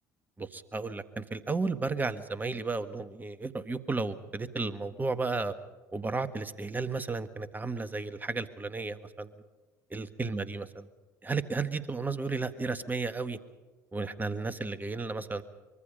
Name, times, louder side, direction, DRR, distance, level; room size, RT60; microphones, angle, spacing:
voice 1, 0.4-5.5 5.9-9.3 9.9-10.9 11.2-13.4 13.9-15.4, right 3 dB, 20° right, 12 dB, 1.6 m, -33 dB
24.5 x 23.0 x 5.5 m, 1.2 s
hypercardioid pair, 65°, 9 cm